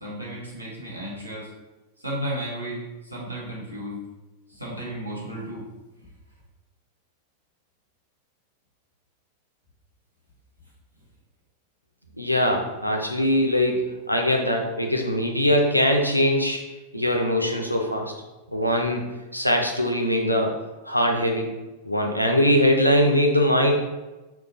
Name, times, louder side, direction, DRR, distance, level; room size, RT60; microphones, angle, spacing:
voice 1, 0.0-1.5 2.0-4.0 4.5-5.6, right 1 dB, 85° right, -4 dB, 0.8 m, -33 dB
voice 2, 12.2-16.6 16.9-18.1 18.5-19.1 19.3-20.5 20.9-21.5 21.8-23.7, equal, 90° left, 1 dB, 0.4 m, -22 dB
3.7 x 2.3 x 2.6 m, 1.1 s
figure-of-eight pair, 90°, 0 cm